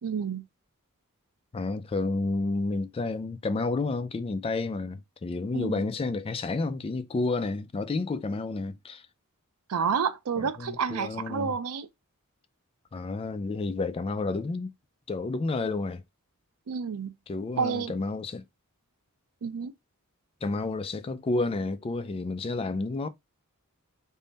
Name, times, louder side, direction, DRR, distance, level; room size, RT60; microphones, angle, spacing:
voice 1, 0.0-0.4 5.5-5.8 9.7-11.9 16.7-17.1 17.6-17.9 19.4-19.7, right 6 dB, 90° right, 0.5 m, -29 dB
voice 2, 1.5-9.1 10.4-11.5 12.9-14.7 15.1-16.0 17.3-18.4 20.4-23.1, left 3 dB, 25° left, 0.3 m, -30 dB
3.7 x 2.1 x 3.8 m
head